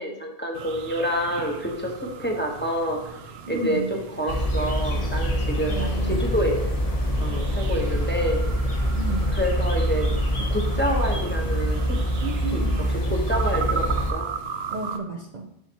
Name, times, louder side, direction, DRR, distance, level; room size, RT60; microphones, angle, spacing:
voice 1, 0.0-3.0 3.5-5.8 6.1-6.6 7.2-8.4 9.4-10.1 10.5-12.0 12.5-12.6 13.1-14.3, equal, 10° left, -1 dB, 1.0 m, -27 dB
sound 1, 0.5-15.0, right 6 dB, 80° right, 0.9 m, -37 dB
voice 2, 3.5-3.9 5.7-6.3 8.9-9.4 12.2-12.9 14.7-15.5, right 2 dB, 50° right, 2 dB, 0.6 m, -32 dB
sound 2, 4.3-14.1, equal, 40° left, 0.9 m, -25 dB
7.0 x 5.7 x 2.9 m, 0.84 s
omnidirectional pair, 1.0 m